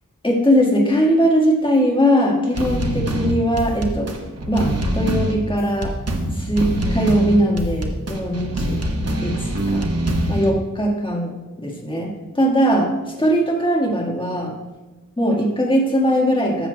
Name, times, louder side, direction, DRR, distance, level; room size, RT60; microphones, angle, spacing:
voice 1, 0.2-4.1 4.5-5.9 6.3-8.8 9.2-9.9 10.3-12.9 13.2-14.5 15.2-16.7, equal, 15° left, -1 dB, 1.6 m, -20 dB
sound 1, 2.5-10.5, right 1 dB, 50° right, 1.0 m, -24 dB
13.0 x 7.3 x 2.2 m, 1.1 s
wide cardioid pair, 95°, 33 cm